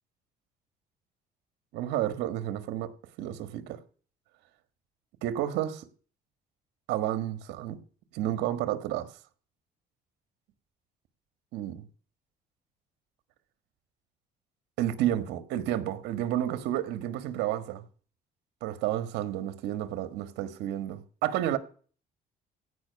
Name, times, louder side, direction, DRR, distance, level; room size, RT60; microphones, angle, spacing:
voice 1, 1.7-2.9 3.2-3.8 5.2-5.9 6.9-7.8 8.1-9.1 11.5-11.8 14.8-17.8 18.6-21.6, right 12 dB, 85° right, 1.5 m, -31 dB
16.5 x 5.5 x 9.7 m
cardioid pair, 110°, 17 cm